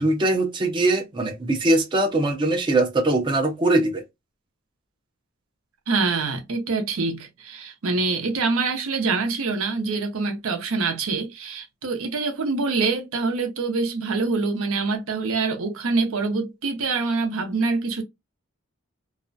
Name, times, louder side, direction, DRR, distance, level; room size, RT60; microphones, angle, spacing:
voice 1, 0.0-4.0, right 2 dB, 20° right, 0.4 m, -21 dB
voice 2, 5.9-18.0, right 4 dB, 75° right, 0.6 m, -25 dB
2.4 x 2.1 x 2.5 m
head